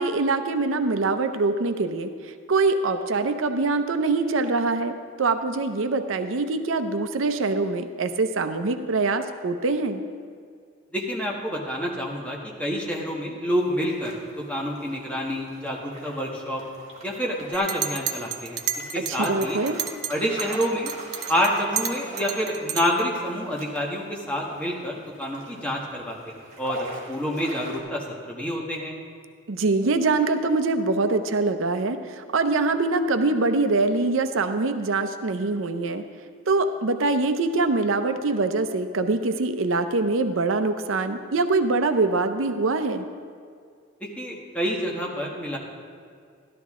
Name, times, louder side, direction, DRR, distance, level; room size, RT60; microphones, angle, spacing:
voice 1, 0.0-10.0 19.0-19.8 29.5-36.0 36.5-43.1, right 3 dB, 85° right, 9 dB, 0.6 m, -24 dB
voice 2, 10.9-16.6 17.0-19.6 20.1-20.9 21.3-29.0 44.0-45.6, equal, 5° left, -3 dB, 1.5 m, -28 dB
sound 1, 13.6-27.8, right 2 dB, 35° right, 2.1 m, -42 dB
Chink clink, 17.5-20.1 20.4-23.1, right 9 dB, 55° right, 0.7 m, -31 dB
13.0 x 12.0 x 3.7 m, 2.1 s
head